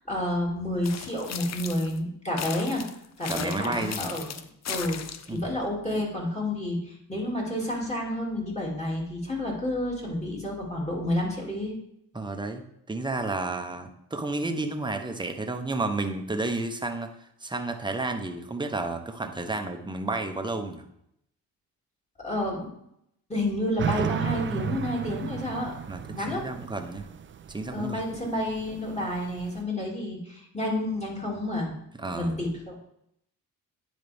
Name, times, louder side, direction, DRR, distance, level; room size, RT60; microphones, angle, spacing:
voice 1, 0.1-2.9 3.2-4.3 4.7-11.7 22.2-22.7 23.3-25.7 26.1-26.5 27.7-31.8 32.1-32.8, left 1 dB, 15° left, -2 dB, 2.6 m, -30 dB
sound 1, 0.8-2.0 2.4-5.4, left 8 dB, 45° left, 0.6 m, -37 dB
voice 2, 3.3-4.1 5.3-5.5 12.1-17.1 17.4-20.9 25.9-27.1 27.5-28.0 32.0-32.4, right 2 dB, 10° right, 6 dB, 0.9 m, -31 dB
sound 2, 23.8-29.6, right 8 dB, 35° right, 0.4 m, -34 dB
9.5 x 4.0 x 3.5 m, 0.76 s
cardioid pair, 70°, 38 cm